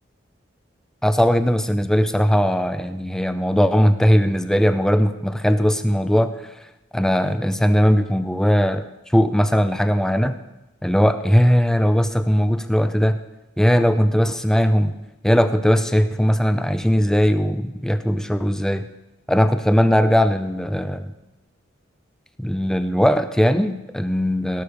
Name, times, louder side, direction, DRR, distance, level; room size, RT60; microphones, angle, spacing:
voice 1, 1.0-6.3 6.9-8.8 9.1-10.4 10.8-13.2 13.6-14.9 15.2-18.9 19.3-21.1 22.4-24.6, equal, 5° left, 9 dB, 0.6 m, -19 dB
17.5 x 6.7 x 5.2 m, 0.99 s
head